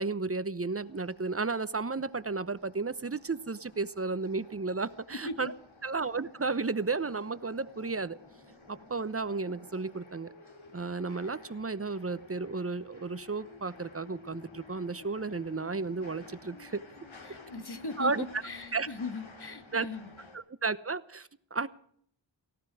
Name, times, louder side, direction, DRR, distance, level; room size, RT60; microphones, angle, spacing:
voice 1, 0.0-5.5 5.8-8.2 8.7-10.3 10.7-16.8 18.0-18.2 18.7-18.9 19.7-19.9 20.3-21.7, right 4 dB, 30° right, 15 dB, 0.9 m, -33 dB
sound 1, 0.8-20.4, left 3 dB, 85° left, 3.0 m, -53 dB
voice 2, 17.2-20.1, left 3 dB, 55° left, 9 dB, 1.9 m, -39 dB
18.0 x 16.0 x 4.9 m, 0.66 s
wide cardioid pair, 55°, 46 cm